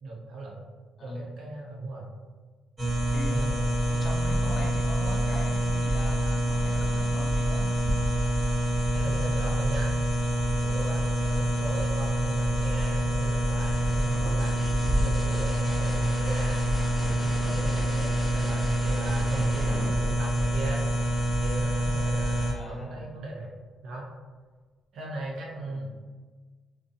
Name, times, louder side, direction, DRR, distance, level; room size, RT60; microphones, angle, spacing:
voice 1, 0.0-0.7 1.0-2.1 3.3-3.6 8.9-9.9 10.6-14.6 15.0-16.6 17.0-20.8 21.4-23.5 23.8-24.1 24.9-25.9, right 2 dB, 70° right, -3 dB, 0.7 m, -37 dB
sound 1, 2.8-22.5, right 1 dB, 45° right, 1.1 m, -26 dB
voice 2, 3.9-7.7 11.2-11.5 22.5-23.1 25.6-26.0, left 1 dB, 35° left, -2 dB, 0.6 m, -39 dB
sound 2, 13.5-21.1 22.9-23.5, right 1 dB, 25° right, 0.6 m, -42 dB
2.5 x 2.2 x 2.7 m, 1.4 s
cardioid pair, 90°, 0 cm